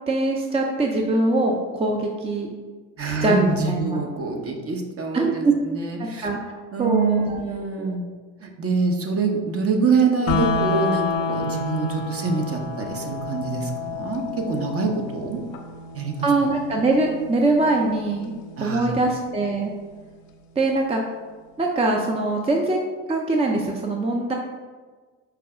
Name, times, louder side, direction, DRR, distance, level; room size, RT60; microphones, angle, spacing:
voice 1, 0.1-2.5 3.2-4.0 5.1-5.5 6.0-6.4 6.8-7.2 7.8-7.9 16.2-18.3 18.6-19.7 20.6-21.0 21.6-22.8 23.1-24.3, right 2 dB, 15° right, 1 dB, 0.5 m, -22 dB
voice 2, 3.0-6.3 6.7-8.1 8.4-15.4 15.9-16.3 18.6-18.9, right 4 dB, 40° right, 2 dB, 0.9 m, -25 dB
sound 1, 10.3-20.3, left 3 dB, 85° left, 0.6 m, -30 dB
4.8 x 2.3 x 4.8 m, 1.4 s
hypercardioid pair, 60°, 38 cm